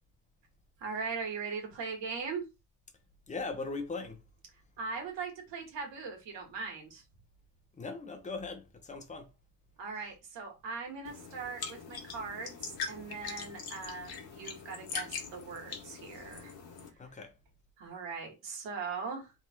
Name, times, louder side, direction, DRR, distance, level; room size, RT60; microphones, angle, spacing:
voice 1, 0.8-2.5 4.8-7.0 9.8-16.5 17.8-19.3, right 5 dB, 80° right, 1.7 m, -40 dB
voice 2, 3.3-4.2 7.8-9.3 17.0-17.3, left 3 dB, 15° left, 0.6 m, -39 dB
sound 1, 11.0-16.9, left 6 dB, 55° left, 1.1 m, -42 dB
3.5 x 2.3 x 4.3 m
cardioid pair, 170°, 43 cm